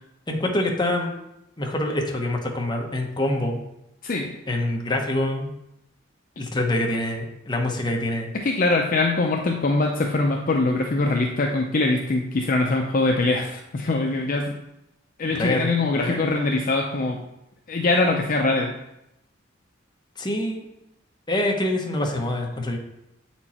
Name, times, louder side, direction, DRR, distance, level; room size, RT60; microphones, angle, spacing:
voice 1, 0.3-1.1 1.6-3.6 4.5-5.5 6.4-8.3 15.2-16.3 20.2-20.7 21.3-22.8, left 1 dB, 25° left, 1 dB, 1.0 m, -25 dB
voice 2, 4.0-4.3 8.3-14.6 15.2-17.2 17.7-18.7, left 2 dB, 45° left, 1 dB, 0.6 m, -23 dB
7.6 x 4.5 x 4.3 m, 0.86 s
head